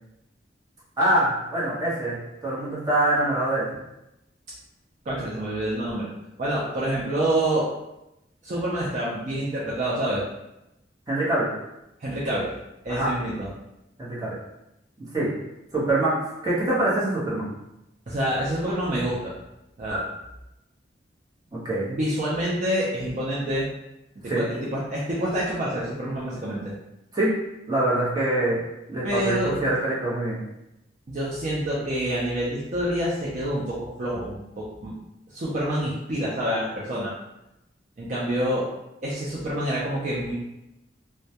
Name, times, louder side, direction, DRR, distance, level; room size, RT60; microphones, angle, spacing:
voice 1, 1.0-3.7 11.1-11.5 12.9-13.1 14.0-14.4 15.0-15.3 15.7-17.5 21.5-21.9 24.3-24.4 27.1-27.4 27.7-28.6 28.9-30.4, right 1 dB, 20° right, -8 dB, 0.8 m, -24 dB
voice 2, 5.1-6.1 6.4-7.7 8.4-10.2 12.0-12.5 12.8-13.5 18.1-19.3 19.8-20.0 21.9-23.7 24.2-26.7 29.0-29.5 31.1-34.9 35.3-37.1 38.0-38.7 39.0-40.3, right 1 dB, 40° right, -7 dB, 0.4 m, -27 dB
2.2 x 2.1 x 2.7 m, 0.90 s
head